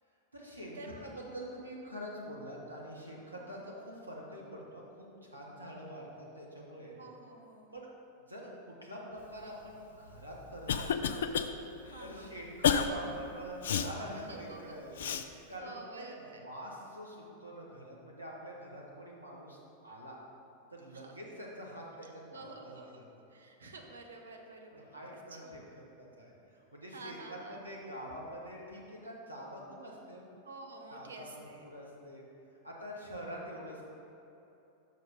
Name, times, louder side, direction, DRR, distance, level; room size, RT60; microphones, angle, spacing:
voice 1, 0.3-7.0 7.7-7.9 8.3-11.2 12.0-19.6 19.8-20.2 20.7-23.0 24.7-25.6 26.0-30.3 30.9-32.2 32.6-33.8, equal, 85° right, -3 dB, 1.3 m, -46 dB
voice 2, 7.0-7.7 11.8-12.3 14.1-14.8 15.2-16.4 20.9-21.1 22.0-22.9 23.3-24.9 25.3-25.5 26.9-27.6 30.4-31.6, right 3 dB, 70° right, 2 dB, 0.8 m, -50 dB
Cough, 10.1-11.5 11.9-12.1 12.6-12.9 13.6-13.9 15.0-15.2, left 8 dB, 60° left, 0.3 m, -30 dB
6.1 x 5.5 x 5.3 m, 2.9 s
figure-of-eight pair, 90°, 0 cm